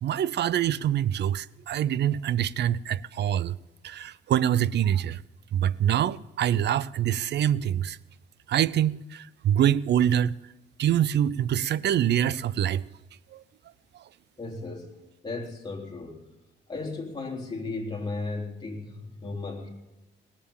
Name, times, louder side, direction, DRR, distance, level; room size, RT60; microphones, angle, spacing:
voice 1, 0.0-3.6 3.8-5.2 5.5-8.0 8.5-10.3 10.8-12.8 13.3-13.4, right 10 dB, 60° right, 0.5 m, -25 dB
voice 2, 14.4-14.9 15.2-16.2 16.7-19.7, left 3 dB, 20° left, 3.6 m, -35 dB
19.0 x 7.3 x 8.6 m
cardioid pair, 90°, 20 cm